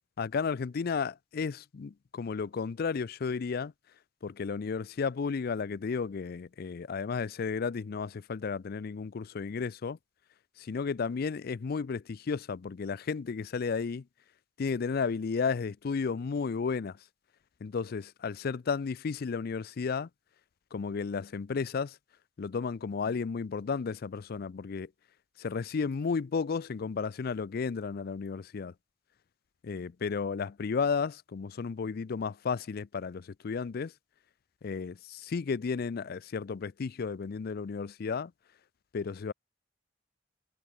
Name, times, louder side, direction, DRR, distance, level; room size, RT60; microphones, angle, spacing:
voice 1, 0.2-3.7 4.2-10.0 10.6-14.0 14.6-17.0 17.6-20.1 20.7-22.0 22.4-24.9 25.4-28.7 29.6-33.9 34.6-38.3 38.9-39.3, left 5 dB, 55° left, 0.4 m, -33 dB
head